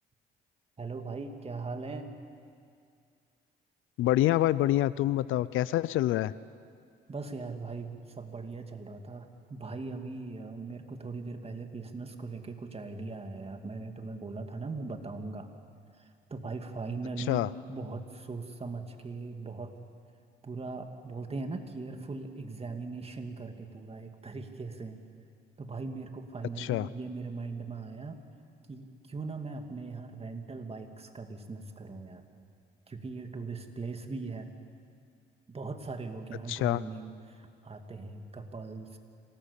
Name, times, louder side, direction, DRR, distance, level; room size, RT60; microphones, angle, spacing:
voice 1, 0.8-2.1 7.1-15.5 16.0-19.7 20.4-25.0 25.6-28.2 28.7-32.2 32.9-34.5 35.5-39.0, right 3 dB, 30° right, 5 dB, 2.4 m, -40 dB
voice 2, 4.0-6.3 17.3-17.5 26.6-26.9 36.5-36.8, left 14 dB, 85° left, 18 dB, 0.6 m, -26 dB
26.5 x 18.5 x 8.4 m, 2.3 s
cardioid pair, 90°, 20 cm